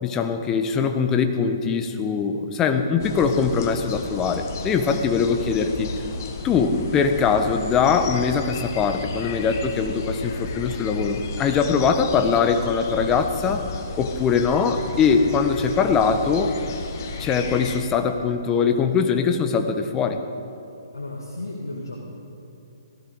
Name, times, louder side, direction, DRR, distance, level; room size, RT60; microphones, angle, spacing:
voice 1, 0.0-5.9 6.4-13.7 14.0-16.5 17.2-20.2, left 6 dB, 20° left, 7 dB, 1.1 m, -22 dB
sound 1, 3.0-17.8, left 4 dB, 45° left, 1.5 m, -33 dB
voice 2, 20.9-22.0, left 2 dB, 85° left, -1 dB, 2.1 m, -33 dB
17.5 x 15.0 x 4.8 m, 3.0 s
figure-of-eight pair, 130°, 2 cm